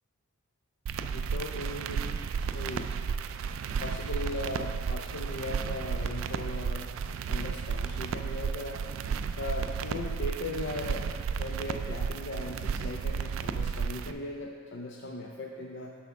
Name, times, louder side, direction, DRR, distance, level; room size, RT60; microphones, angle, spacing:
sound 1, 0.9-14.1, right 6 dB, 75° right, 0.3 m, -33 dB
voice 1, 1.0-2.0 2.5-3.0 3.8-6.9 7.3-8.8 9.4-11.1 11.4-15.9, left 1 dB, 60° left, 0 dB, 0.5 m, -38 dB
8.7 x 3.5 x 6.1 m, 2.3 s
head